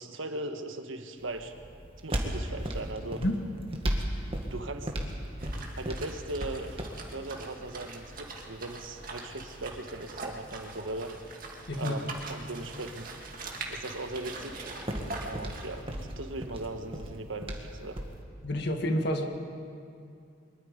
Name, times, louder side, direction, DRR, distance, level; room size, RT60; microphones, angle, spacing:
voice 1, 0.0-1.5 2.0-3.2 4.4-4.9 5.7-11.1 11.8-13.1 13.7-14.7 15.2-18.0, right 2 dB, 80° right, 6 dB, 1.4 m, -39 dB
sound 1, 1.2-18.2, equal, 30° right, 1.8 m, -38 dB
sound 2, 5.4-15.8, right 3 dB, 45° right, 2.1 m, -43 dB
voice 2, 11.7-12.0 18.4-19.2, equal, 55° left, 4 dB, 1.8 m, -29 dB
23.0 x 22.0 x 5.2 m, 2.5 s
head